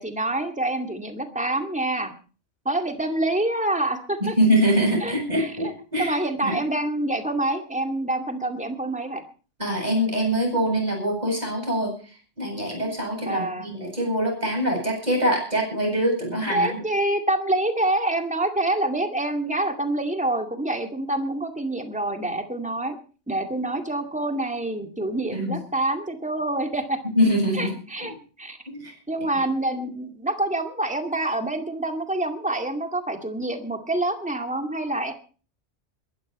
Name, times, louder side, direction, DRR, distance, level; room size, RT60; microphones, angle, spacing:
voice 1, 0.0-2.1 2.6-4.3 5.0-5.5 6.0-9.2 13.2-13.7 16.5-23.0 23.3-27.0 27.5-28.1 28.4-28.6 29.1-35.1, right 1 dB, 5° right, 5 dB, 2.1 m, -26 dB
voice 2, 4.4-6.2 6.4-6.6 9.6-11.9 12.4-16.8 25.3-25.6 27.1-27.7 28.7-28.9, equal, 35° right, 1 dB, 8.3 m, -24 dB
22.0 x 13.0 x 4.3 m, 0.38 s
omnidirectional pair, 1.2 m